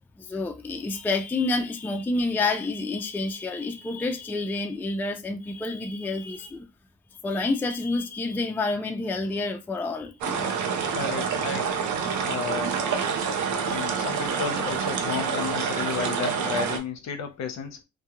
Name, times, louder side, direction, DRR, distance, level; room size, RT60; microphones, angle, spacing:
voice 1, 0.2-6.7 7.2-10.6 13.6-13.9, left 3 dB, 5° left, 0.3 m, -29 dB
sound 1, 10.2-16.8, right 6 dB, 75° right, 0.6 m, -27 dB
voice 2, 10.9-11.8 12.2-12.8 13.5-17.8, left 6 dB, 65° left, 0.7 m, -32 dB
2.3 x 2.2 x 2.9 m
cardioid pair, 90°, 30 cm